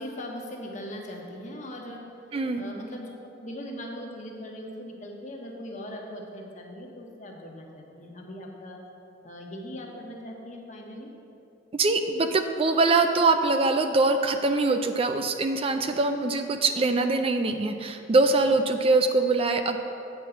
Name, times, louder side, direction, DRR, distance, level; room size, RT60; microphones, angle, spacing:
voice 1, 0.0-2.0 2.5-3.1 3.4-8.8 9.2-11.1, left 1 dB, 45° left, 0 dB, 1.1 m, -39 dB
voice 2, 11.7-19.8, right 3 dB, 35° right, 7 dB, 0.4 m, -23 dB
8.2 x 4.5 x 7.0 m, 2.6 s
head